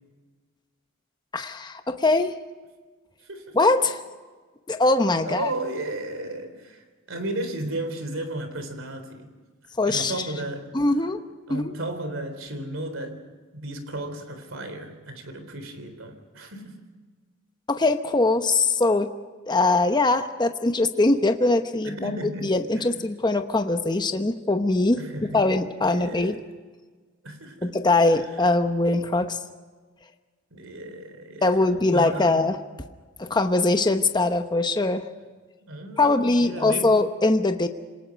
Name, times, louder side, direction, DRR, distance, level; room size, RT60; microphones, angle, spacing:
voice 1, 1.3-2.3 3.5-4.0 4.7-5.5 9.8-10.1 10.7-11.2 11.5-11.7 17.7-19.1 19.5-22.1 22.4-25.0 25.3-26.4 27.6-29.4 31.4-32.6 33.2-35.0 36.0-37.7, left 2 dB, 20° left, 7 dB, 0.9 m, -22 dB
voice 2, 3.2-3.6 5.2-9.3 9.9-10.8 11.5-13.2 13.5-16.8 21.8-23.0 24.9-26.4 27.2-27.8 28.2-28.5 30.5-32.5 35.7-37.0, right 1 dB, 65° right, 8 dB, 3.6 m, -34 dB
27.5 x 19.0 x 5.2 m, 1.4 s
head